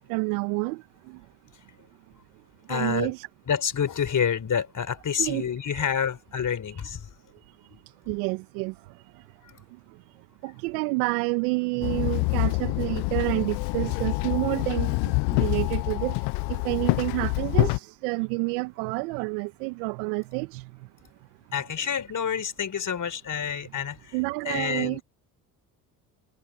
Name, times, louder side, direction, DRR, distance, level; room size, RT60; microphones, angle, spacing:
voice 1, 0.1-1.2 2.7-3.3 5.2-5.4 5.7-5.9 8.1-8.7 10.4-15.1 15.4-16.2 16.5-20.7 24.1-25.0, right 28 dB, 75° right, 1.8 m, -29 dB
voice 2, 2.7-3.1 3.5-7.1 9.5-9.6 21.5-24.2 24.4-25.0, left 7 dB, 40° left, 4.4 m, -28 dB
Walk footsteps / Chatter / Hiss, 11.8-17.8, left 32 dB, 65° left, 0.5 m, -26 dB
hypercardioid pair, 55°, 45 cm